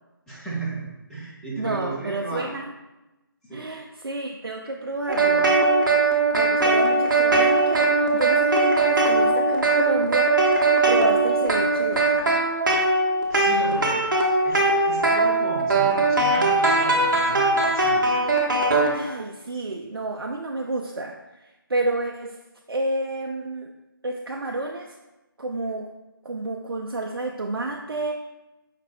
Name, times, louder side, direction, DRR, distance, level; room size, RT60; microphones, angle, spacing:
voice 1, 0.3-2.5 3.4-3.7 13.3-14.0 14.4-18.1, right 3 dB, 5° left, -9 dB, 0.6 m, -34 dB
voice 2, 1.6-2.6 3.5-5.5 6.0-6.1 6.3-10.3 10.9-12.4 18.9-22.4 22.7-23.7 24.0-24.9 25.4-25.9 26.2-28.1, right 2 dB, 90° right, 1 dB, 0.4 m, -30 dB
sound 1, 5.1-18.9, right 3 dB, 60° right, 0.9 m, -20 dB
5.1 x 2.0 x 4.2 m, 1.0 s
figure-of-eight pair, 155°, 12 cm